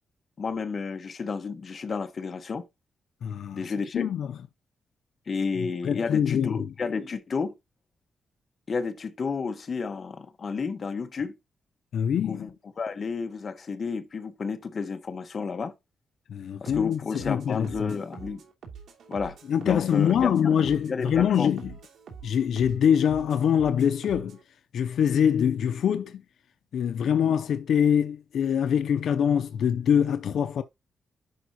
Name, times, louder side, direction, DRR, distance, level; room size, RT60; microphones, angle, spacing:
voice 1, 0.4-2.6 3.5-4.1 5.3-7.5 8.7-11.3 12.3-15.7 16.6-18.4 19.1-19.4 19.6-20.3 20.9-21.5 27.1-27.3, left 5 dB, 40° left, 1.2 m, -31 dB
voice 2, 3.2-4.3 5.8-6.7 11.9-12.5 16.3-18.0 19.5-21.7 22.2-24.4 24.7-26.2 26.7-30.6, left 8 dB, 70° left, 0.6 m, -24 dB
sound 1, 16.7-24.4, right 6 dB, 85° right, 2.9 m, -45 dB
11.0 x 4.4 x 2.9 m
wide cardioid pair, 150°, 0 cm